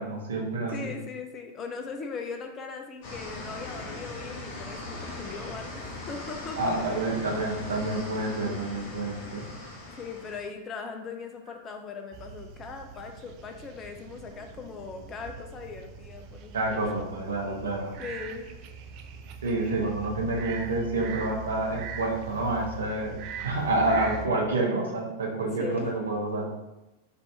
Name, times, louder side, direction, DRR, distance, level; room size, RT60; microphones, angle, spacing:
voice 1, 0.0-0.9 6.6-9.5 16.5-18.0 19.4-26.5, right 2 dB, 70° right, -1 dB, 0.9 m, -28 dB
voice 2, 0.7-6.8 10.0-17.1 18.0-18.5 25.6-25.9, left 5 dB, 25° left, 3 dB, 0.5 m, -39 dB
sound 1, 3.0-10.4, left 2 dB, 45° left, 1.2 m, -40 dB
sound 2, 12.1-24.3, right 6 dB, 40° right, 0.3 m, -42 dB
4.3 x 2.7 x 3.3 m, 0.98 s
figure-of-eight pair, 90°, 0 cm